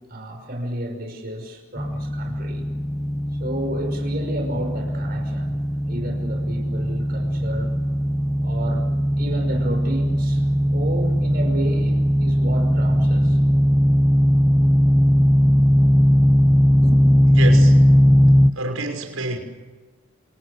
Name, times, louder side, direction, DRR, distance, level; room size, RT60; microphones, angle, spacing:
voice 1, 0.1-2.7 3.4-5.5 5.8-7.7 8.4-8.9 9.2-10.4 10.7-13.4 16.8-17.0, right 1 dB, 45° right, 3 dB, 5.6 m, -32 dB
sound 1, 1.8-18.5, equal, 5° left, 0.8 m, -18 dB
voice 2, 17.3-17.8 18.5-19.4, right 2 dB, 85° right, 5 dB, 5.9 m, -27 dB
29.0 x 28.5 x 6.5 m, 1.3 s
head